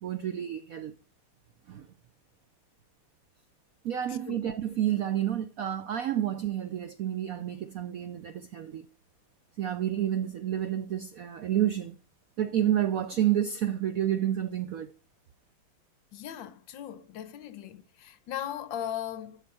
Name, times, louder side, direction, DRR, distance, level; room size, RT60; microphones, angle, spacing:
voice 1, 0.0-0.9 1.7-1.9 3.8-8.9 9.6-12.0 12.4-14.9, right 11 dB, 75° right, 0.8 m, -29 dB
voice 2, 4.1-4.4 16.1-19.4, left 10 dB, 75° left, 1.5 m, -38 dB
12.5 x 5.6 x 4.1 m
omnidirectional pair, 2.2 m